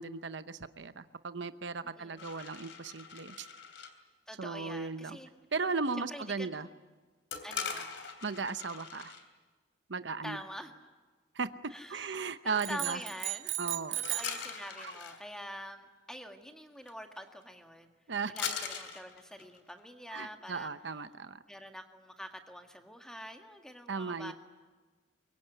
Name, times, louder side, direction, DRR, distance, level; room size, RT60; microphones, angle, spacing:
voice 1, 0.0-3.5 4.4-5.2 5.5-6.7 8.2-9.1 9.9-10.4 11.3-11.5 11.9-13.0 13.6-14.0 14.8-14.9 18.1-18.3 20.1-21.4 23.9-24.3, right 4 dB, 65° right, 11 dB, 0.9 m, -36 dB
voice 2, 2.0-2.3 4.3-5.3 5.9-6.7 7.4-8.0 10.2-10.7 11.7-12.2 12.4-13.6 13.9-17.9 18.3-20.7 21.5-24.3, equal, 5° left, 5 dB, 1.8 m, -45 dB
sound 1, 2.2-3.9 7.3-9.3 14.0-15.2 16.9-17.0 17.2-17.4 18.4-19.8, left 6 dB, 75° left, 3.0 m, -41 dB
sound 2, 12.6-14.4, right 14 dB, 90° right, 1.6 m, -36 dB
23.5 x 23.5 x 9.3 m, 1.3 s
head